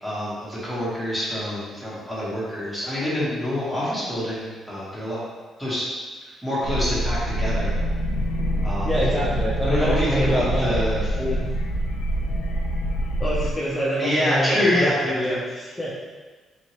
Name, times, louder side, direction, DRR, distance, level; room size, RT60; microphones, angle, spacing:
voice 1, 0.0-5.2 5.6-5.8 6.2-7.7 8.6-8.9 9.7-11.3 14.0-15.4, left 1 dB, 5° right, -9 dB, 1.3 m, -26 dB
sound 1, 6.6-13.5, equal, 80° left, 0.3 m, -25 dB
voice 2, 8.8-10.8 11.4-11.5 13.2-15.9, equal, 20° left, -8 dB, 0.6 m, -26 dB
2.9 x 2.8 x 3.0 m, 1.3 s
cardioid pair, 90°, 0 cm